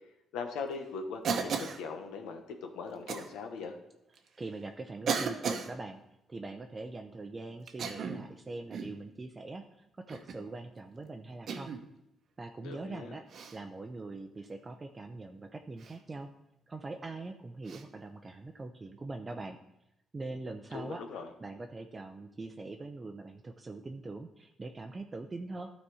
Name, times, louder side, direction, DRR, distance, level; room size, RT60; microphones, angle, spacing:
voice 1, 0.3-3.8 12.6-13.2 20.7-21.3, left 5 dB, 90° left, 5 dB, 1.0 m, -40 dB
Cough, 1.2-1.8 3.1-3.3 4.2-4.3 5.1-5.7 7.7-8.3 8.7-9.0 10.1-10.4 11.5-11.8 13.3-13.6 15.8-16.0 17.7-17.8, right 5 dB, 60° right, 0.9 m, -34 dB
voice 2, 4.4-6.0 6.3-11.7 12.4-13.2 13.5-16.3 16.7-19.6 20.1-21.0 21.4-25.7, right 3 dB, 25° right, 5 dB, 0.6 m, -42 dB
12.0 x 4.2 x 4.8 m, 0.86 s
cardioid pair, 90°, 0 cm